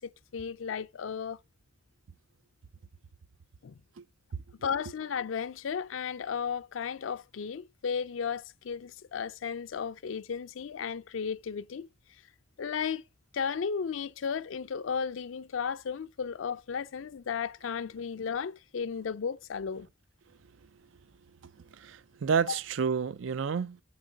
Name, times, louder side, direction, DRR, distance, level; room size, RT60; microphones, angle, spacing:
voice 1, 0.0-1.4 3.6-3.8 4.6-11.9 12.6-13.0 13.3-19.9 22.5-22.6, left 6 dB, 85° left, 0.4 m, -34 dB
voice 2, 21.4-23.8, right 6 dB, 75° right, 0.4 m, -31 dB
7.3 x 4.6 x 5.1 m
head